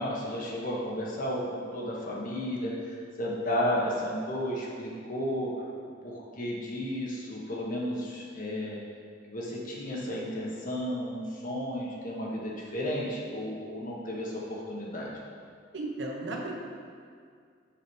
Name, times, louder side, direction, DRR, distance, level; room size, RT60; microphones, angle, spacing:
voice 1, 0.0-5.5 6.0-8.8 9.3-15.1, equal, 45° left, -4 dB, 1.3 m, -33 dB
voice 2, 15.7-16.5, right 2 dB, 65° right, -1 dB, 1.2 m, -34 dB
7.3 x 5.0 x 5.6 m, 2.2 s
head